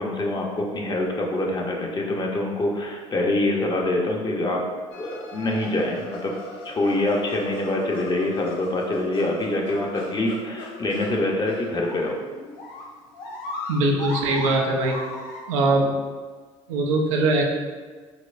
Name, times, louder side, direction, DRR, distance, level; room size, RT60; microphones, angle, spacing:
voice 1, 0.0-4.6 5.0-6.3 6.6-12.2, left 1 dB, 25° left, 0 dB, 0.6 m, -25 dB
sound 1, 4.9-15.7, left 2 dB, 65° left, 0.6 m, -37 dB
voice 2, 13.7-15.0 15.5-16.0 16.7-17.4, right 2 dB, 80° right, 0 dB, 0.5 m, -21 dB
4.1 x 2.1 x 2.5 m, 1.5 s
hypercardioid pair, 65°, 16 cm